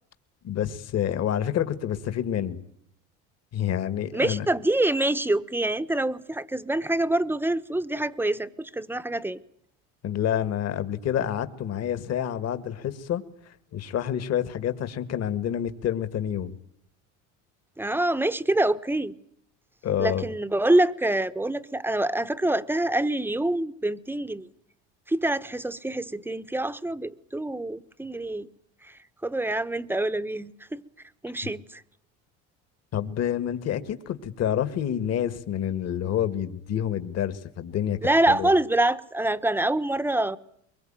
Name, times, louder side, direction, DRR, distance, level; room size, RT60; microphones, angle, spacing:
voice 1, 0.4-2.6 3.5-4.5 10.0-13.2 13.7-16.5 19.8-20.3 32.9-38.0 38.3-38.5, left 10 dB, 45° left, 2.1 m, -28 dB
voice 2, 4.1-9.4 17.8-19.1 20.0-24.5 25.1-28.5 28.8-28.9 29.2-30.8 31.2-31.8 38.0-40.4, right 1 dB, 5° right, 1.1 m, -26 dB
23.0 x 22.0 x 9.1 m
supercardioid pair, 110°, 34 cm